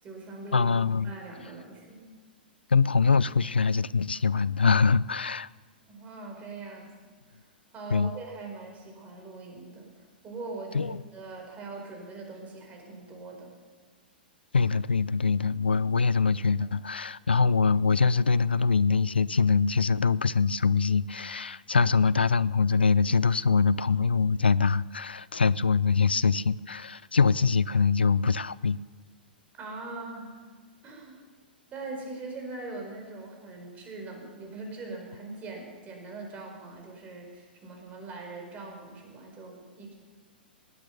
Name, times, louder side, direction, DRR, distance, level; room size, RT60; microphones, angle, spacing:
voice 1, 0.0-0.7 1.0-2.1 5.9-6.9 7.3-7.4 7.7-9.9 10.2-13.5 29.6-30.4 30.8-31.2 31.7-40.0, right 3 dB, 25° right, 2 dB, 4.9 m, -41 dB
voice 2, 0.5-1.1 2.7-5.5 7.9-8.1 10.7-11.0 14.5-28.8, left 5 dB, 90° left, 20 dB, 0.4 m, -24 dB
19.0 x 9.1 x 6.8 m, 1.5 s
hypercardioid pair, 110°, 5 cm